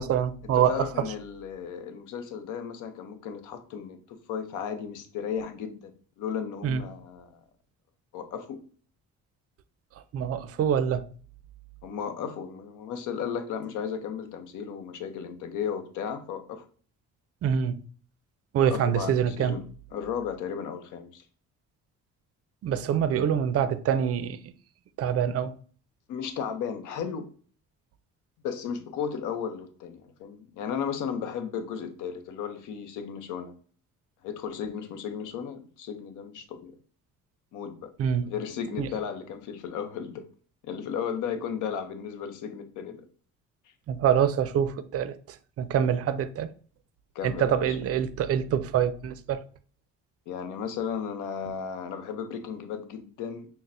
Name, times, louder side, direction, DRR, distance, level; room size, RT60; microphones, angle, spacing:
voice 1, 0.0-1.1 6.6-6.8 10.1-11.0 17.4-17.8 18.5-19.6 22.6-24.4 25.0-25.5 38.0-38.3 38.8-38.9 43.9-45.1 45.6-46.5 47.2-49.4, right 8 dB, 50° right, 0.4 m, -25 dB
voice 2, 0.5-5.9 6.2-7.3 8.1-8.6 11.8-16.6 18.6-19.7 19.9-21.2 26.1-27.3 28.4-33.5 34.2-36.7 37.5-37.9 38.2-40.3 40.6-43.1 47.1-47.8 50.3-53.5, left 7 dB, 85° left, 0.6 m, -35 dB
5.8 x 2.1 x 2.5 m
cardioid pair, 90°, 30 cm